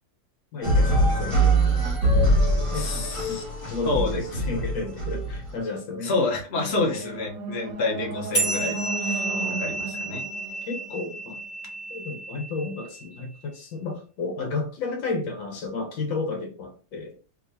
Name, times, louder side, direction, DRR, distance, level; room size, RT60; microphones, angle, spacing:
voice 1, 0.5-1.9 2.7-6.1 6.6-7.2 9.3-9.7 10.6-11.4 11.9-17.2, left 3 dB, 75° left, 1.6 m, -33 dB
sound 1, 0.6-5.5, right 1 dB, 20° right, 0.9 m, -23 dB
voice 2, 2.7-3.4 3.8-4.4 6.0-9.3 9.6-10.2, left 3 dB, 40° left, 1.1 m, -28 dB
sound 2, 6.6-11.7, right 3 dB, 70° right, 1.0 m, -35 dB
sound 3, 8.3-13.2, right 2 dB, 20° left, 1.0 m, -31 dB
3.6 x 2.9 x 2.7 m
omnidirectional pair, 2.1 m